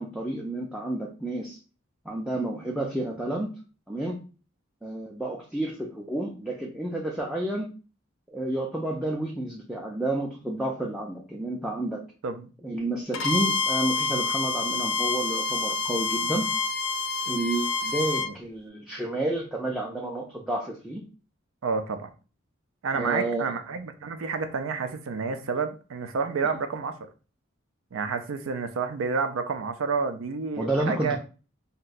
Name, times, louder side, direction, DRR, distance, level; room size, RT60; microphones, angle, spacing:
voice 1, 0.0-1.6 2.1-3.6 3.9-4.2 4.8-7.7 8.3-12.0 12.6-16.5 17.3-21.0 22.9-23.5 30.6-31.2, right 1 dB, 5° right, -2 dB, 0.3 m, -30 dB
Bowed string instrument, 13.1-18.3, left 3 dB, 75° left, 0.4 m, -27 dB
voice 2, 21.6-22.1 22.8-26.9 27.9-31.2, right 5 dB, 85° right, 8 dB, 0.4 m, -29 dB
2.7 x 2.2 x 3.8 m, 0.36 s
head